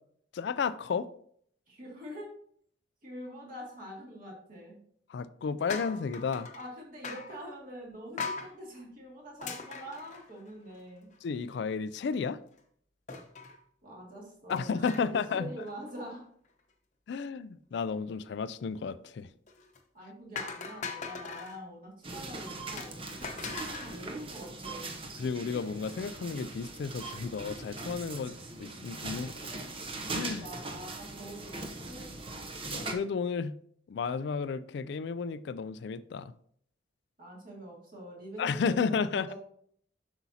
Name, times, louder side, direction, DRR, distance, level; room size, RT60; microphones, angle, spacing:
voice 1, 0.3-1.1 5.1-6.5 11.2-12.4 14.5-15.5 17.1-19.3 25.2-29.3 30.1-30.5 32.6-33.6 33.9-36.3 38.4-39.3, left 5 dB, 60° left, 0.3 m, -32 dB
voice 2, 1.7-2.3 3.0-4.8 6.5-11.1 13.8-16.2 19.9-24.9 29.1-29.7 30.4-32.4 37.2-39.3, equal, 45° right, 2.4 m, -45 dB
sound 1, 5.7-6.7 7.0-7.4 8.2-8.5 9.4-10.8 11.1-11.2 11.5-11.6 13.1-13.6 14.5-15.3 15.6-15.9 19.5-19.8 20.4-21.6 22.8-24.0, left 5 dB, 40° left, 0.8 m, -40 dB
sound 2, 22.0-32.9, right 2 dB, 30° right, 0.7 m, -40 dB
7.8 x 6.0 x 2.8 m
head